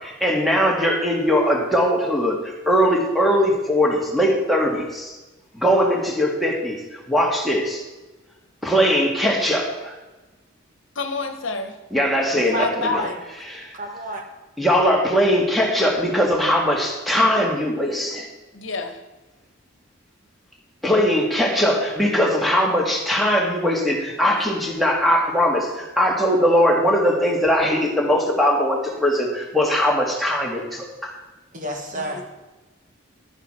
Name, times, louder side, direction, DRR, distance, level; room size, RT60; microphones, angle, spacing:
voice 1, 0.0-5.2 5.5-7.8 8.6-9.9 11.9-12.9 13.5-13.7 14.6-18.3 20.8-31.1, equal, ahead, -2 dB, 1.8 m, -20 dB
voice 2, 10.9-11.7 12.3-13.1 18.5-18.9 31.9-32.2, left 4 dB, 65° left, 7 dB, 1.3 m, -28 dB
voice 3, 12.5-13.2 13.7-14.2 31.5-32.2, right 1 dB, 40° right, 2 dB, 1.8 m, -30 dB
11.5 x 9.9 x 4.4 m, 1.1 s
head